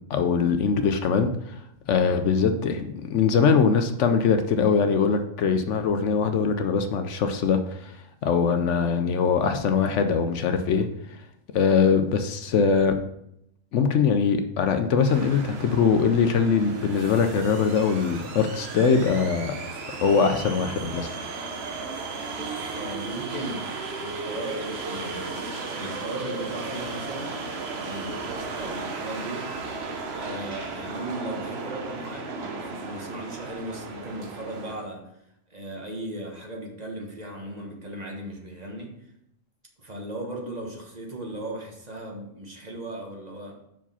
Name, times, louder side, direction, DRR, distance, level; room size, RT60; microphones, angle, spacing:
voice 1, 0.1-1.6 1.9-7.9 8.2-10.9 11.5-12.9 13.7-19.5 20.0-21.1, left 6 dB, 70° left, 8 dB, 0.9 m, -22 dB
sound 1, 15.0-34.8, right 4 dB, 55° right, 1.1 m, -35 dB
voice 2, 22.3-23.7 24.0-25.4 25.8-27.4 27.8-29.5 30.1-35.1 35.5-38.9 39.8-43.6, right 1 dB, 35° right, 0 dB, 1.4 m, -37 dB
5.9 x 4.8 x 5.5 m, 0.78 s
omnidirectional pair, 1.3 m